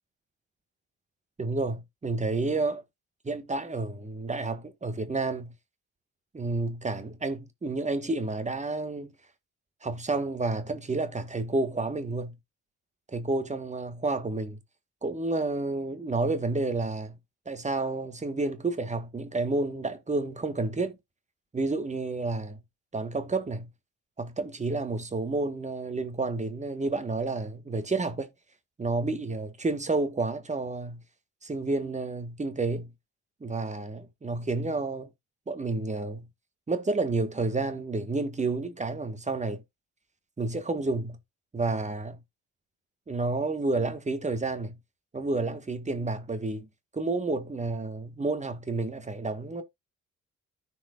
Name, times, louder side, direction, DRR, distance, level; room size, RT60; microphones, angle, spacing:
voice 1, 1.4-2.8 3.2-5.5 6.3-9.1 9.8-12.3 13.1-14.6 15.0-17.1 17.4-21.0 21.5-22.6 22.9-23.7 24.2-28.3 28.8-31.0 31.4-32.9 33.4-35.1 35.5-36.3 36.7-39.6 40.4-41.2 41.5-42.2 43.1-44.8 45.1-46.7 46.9-49.6, right 3 dB, 25° right, 1.4 m, -30 dB
14.0 x 4.7 x 2.4 m
cardioid pair, 90°, 30 cm